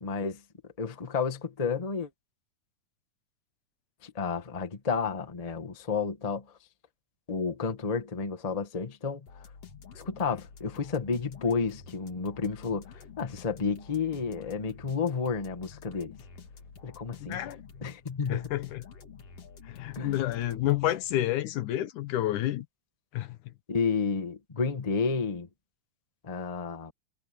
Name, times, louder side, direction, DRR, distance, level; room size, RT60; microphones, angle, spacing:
voice 1, 0.0-0.4 0.8-2.1 4.0-6.4 7.3-9.2 9.9-16.1 16.8-17.5 17.8-18.5 19.9-20.2 23.7-25.5 26.2-26.9, left 5 dB, 25° left, 0.9 m, -31 dB
sound 1, 9.3-21.5, left 6 dB, 55° left, 3.2 m, -49 dB
voice 2, 17.2-17.6 18.3-18.9 19.7-22.7 23.1-23.4, left 14 dB, 85° left, 2.6 m, -29 dB
omnidirectional pair, 3.5 m